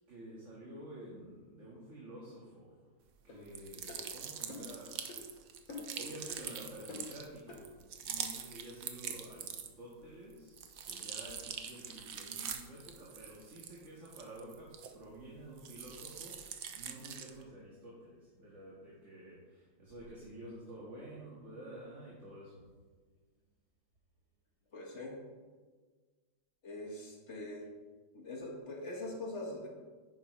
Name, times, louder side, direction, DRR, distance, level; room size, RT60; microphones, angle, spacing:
voice 1, 0.1-2.8 3.2-4.9 5.9-7.7 8.0-22.6, right 1 dB, 40° right, -5 dB, 2.0 m, -50 dB
sound 1, 3.3-3.4 3.9-4.0 4.5-4.7 5.1-5.2 5.7-6.0 6.3-6.4 6.9-7.1 7.5-7.6, left 4 dB, 80° left, 2.9 m, -46 dB
sound 2, 3.5-9.9 10.3-15.2 15.6-17.4, right 8 dB, 60° right, 1.0 m, -44 dB
voice 2, 24.7-25.2 26.6-27.7 28.1-29.7, left 2 dB, 40° left, 0 dB, 1.7 m, -42 dB
10.5 x 9.6 x 3.2 m, 1.4 s
omnidirectional pair, 2.1 m